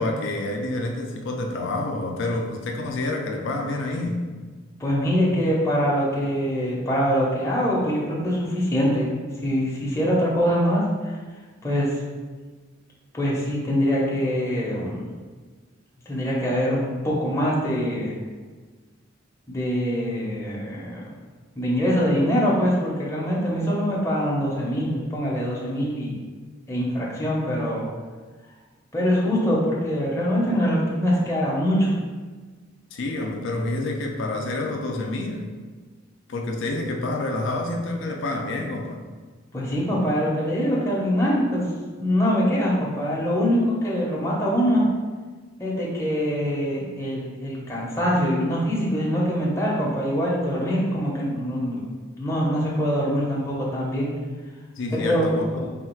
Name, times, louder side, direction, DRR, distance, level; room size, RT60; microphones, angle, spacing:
voice 1, 0.0-4.2 32.9-35.5 36.3-39.0 54.8-55.6, left 2 dB, 65° left, 2 dB, 0.4 m, -28 dB
voice 2, 4.8-9.1 9.4-11.2 11.6-12.0 13.1-15.1 16.1-18.2 19.5-21.1 21.6-26.2 26.7-27.8 28.9-32.0 39.5-41.6 42.0-44.9 45.6-51.8 52.2-54.1 54.9-55.7, equal, 15° left, -6 dB, 0.7 m, -23 dB
3.4 x 2.3 x 4.4 m, 1.4 s
head